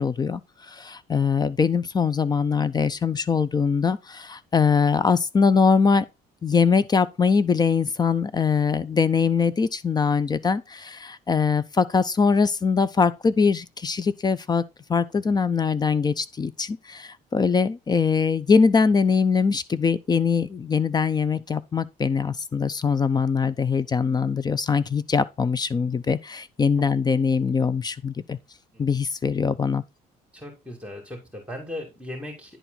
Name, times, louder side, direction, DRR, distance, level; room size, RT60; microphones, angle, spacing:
voice 1, 0.0-6.1 6.4-14.6 14.9-28.4 28.8-29.8, left 5 dB, 25° left, 0.5 m, -22 dB
voice 2, 30.3-32.6, left 1 dB, 5° right, 2.5 m, -37 dB
10.0 x 4.3 x 3.9 m
cardioid pair, 110°, 17 cm